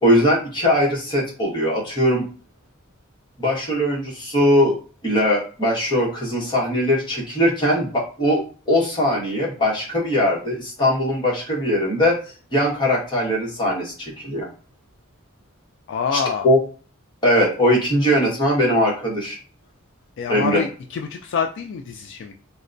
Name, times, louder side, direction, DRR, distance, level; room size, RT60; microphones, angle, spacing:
voice 1, 0.0-2.2 3.4-4.8 5.0-8.4 8.7-12.2 12.5-14.5 16.1-16.6 17.2-19.4 20.3-20.6, equal, 20° left, -4 dB, 1.2 m, -20 dB
voice 2, 15.9-16.5 20.2-22.3, left 6 dB, 60° left, 3 dB, 0.3 m, -26 dB
4.0 x 2.1 x 2.5 m, 0.37 s
head